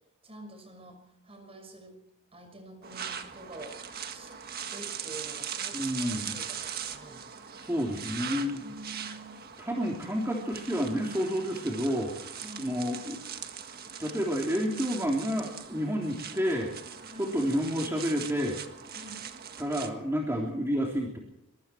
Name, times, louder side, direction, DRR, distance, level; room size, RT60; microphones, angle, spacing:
voice 1, 0.2-2.0 2.3-3.8 4.1-4.4 4.7-7.3 8.6-9.4 12.4-12.7 17.1-17.3 18.9-19.2, right 2 dB, 25° right, 5 dB, 6.1 m, -47 dB
sound 1, 2.8-19.9, right 8 dB, 45° right, 1.7 m, -41 dB
voice 2, 5.7-6.5 7.6-8.6 9.6-13.2 14.0-16.7 17.2-18.6 19.6-21.2, equal, 10° right, -1 dB, 3.4 m, -30 dB
24.5 x 23.5 x 4.6 m, 0.85 s
head